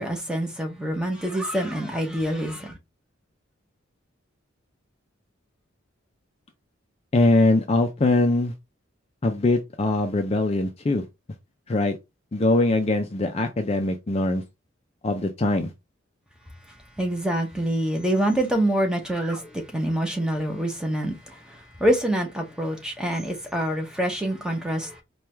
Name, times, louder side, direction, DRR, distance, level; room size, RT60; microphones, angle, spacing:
voice 1, 0.0-2.8 17.0-25.0, right 1 dB, 5° right, 0.7 m, -26 dB
voice 2, 7.1-8.5 9.2-11.0 11.7-12.0 12.3-14.4 15.0-15.7, left 2 dB, 30° left, 0.4 m, -22 dB
4.5 x 2.3 x 3.2 m
head